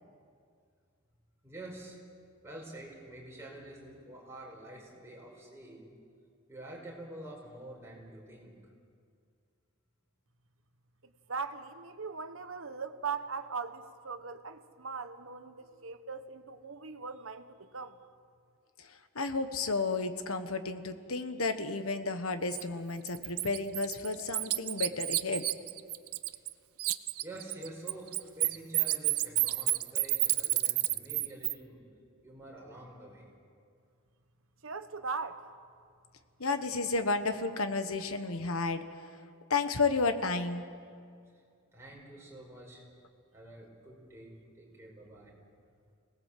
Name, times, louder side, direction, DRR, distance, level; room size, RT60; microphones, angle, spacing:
voice 1, 1.4-2.0 2.4-5.9 6.5-8.5 27.2-31.8 32.2-33.2 38.3-38.6 41.7-42.8 43.3-45.3, right 1 dB, 10° right, -3 dB, 5.3 m, -48 dB
voice 2, 11.3-18.0 34.6-35.4, right 5 dB, 65° right, 10 dB, 1.2 m, -39 dB
voice 3, 19.1-25.4 36.4-38.8 39.5-40.7, left 3 dB, 75° left, 9 dB, 1.4 m, -32 dB
Bird, 22.5-22.6 23.1-26.5 26.8-31.5, right 17 dB, 85° right, 0.7 m, -30 dB
26.0 x 18.5 x 7.7 m, 2.3 s
head